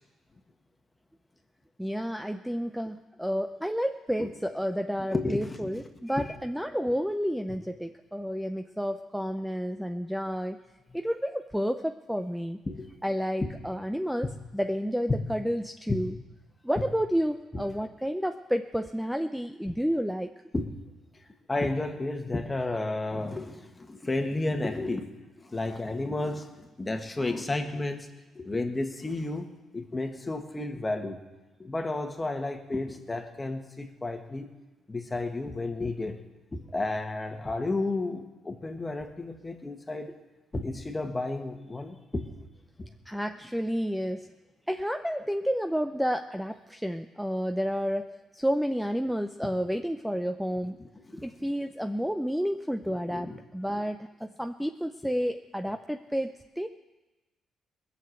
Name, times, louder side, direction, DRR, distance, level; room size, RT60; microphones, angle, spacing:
voice 1, 1.8-10.6 10.9-12.6 13.0-16.1 16.6-20.3 43.1-44.3 44.7-50.8 51.2-56.7, equal, ahead, 7 dB, 0.5 m, -30 dB
voice 2, 5.0-5.8 6.1-6.3 12.7-12.9 13.4-13.5 15.9-16.0 16.8-16.9 17.5-17.6 19.7-19.8 20.5-20.7 21.5-28.1 28.3-31.2 31.6-34.5 34.9-36.2 36.5-40.2 40.5-42.3 42.8-42.9 50.8-51.5 52.9-53.4 53.7-53.8, left 2 dB, 20° left, 5 dB, 1.6 m, -32 dB
20.0 x 6.9 x 7.9 m, 1.1 s
cardioid pair, 90°, 0 cm